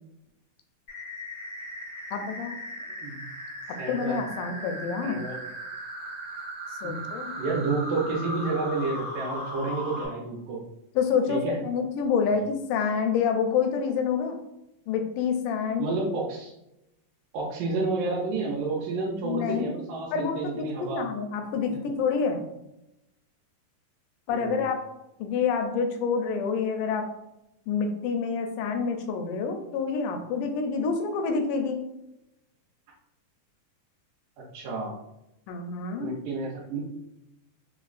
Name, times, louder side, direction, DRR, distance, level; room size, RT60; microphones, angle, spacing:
sound 1, 0.9-10.1, equal, 60° left, 0.7 m, -37 dB
voice 1, 2.1-2.6 3.9-5.2 6.8-7.3 11.0-14.4 14.9-15.9 19.2-19.7 20.1-22.4 24.3-24.8 25.2-27.1 27.7-31.8 35.5-36.1, left 5 dB, 85° left, 4 dB, 2.1 m, -27 dB
voice 2, 3.8-4.2 5.0-5.4 6.8-6.9 7.4-10.6 11.3-11.6 15.8-16.5 17.3-21.1 21.5-21.8 24.3-24.6 34.5-35.0 36.0-36.8, right 3 dB, 80° right, -5 dB, 2.2 m, -30 dB
5.3 x 2.0 x 2.4 m, 0.87 s
omnidirectional pair, 3.7 m